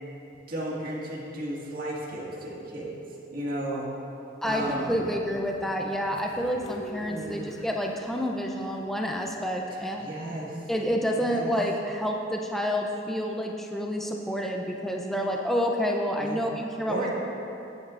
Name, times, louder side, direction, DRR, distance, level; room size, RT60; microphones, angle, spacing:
voice 1, 0.3-3.0 3.3-3.9 4.4-5.1 7.1-7.5 9.7-10.6 11.1-11.5 16.2-16.4 16.9-17.1, right 1 dB, 50° right, -5 dB, 1.9 m, -34 dB
Train, 4.4-9.7, left 1 dB, 70° left, 1.0 m, -45 dB
voice 2, 4.4-10.1 10.7-16.5 16.8-17.1, equal, ahead, 0 dB, 0.5 m, -29 dB
17.0 x 8.7 x 2.5 m, 2.9 s
head